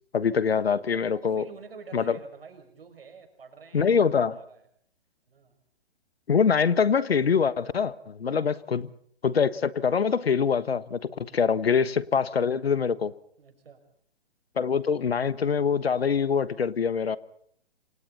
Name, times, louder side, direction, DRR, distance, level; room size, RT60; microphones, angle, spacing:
voice 1, 0.1-1.4 1.9-2.2 3.7-4.4 6.3-8.9 9.2-13.1 14.6-17.2, left 6 dB, 70° left, 17 dB, 1.3 m, -24 dB
voice 2, 1.1-4.1 4.4-4.7 5.3-5.5 8.2-8.6 11.2-11.4 13.4-13.8, right 5 dB, 65° right, 6 dB, 6.2 m, -48 dB
27.5 x 26.5 x 4.2 m, 0.64 s
figure-of-eight pair, 125°, 32 cm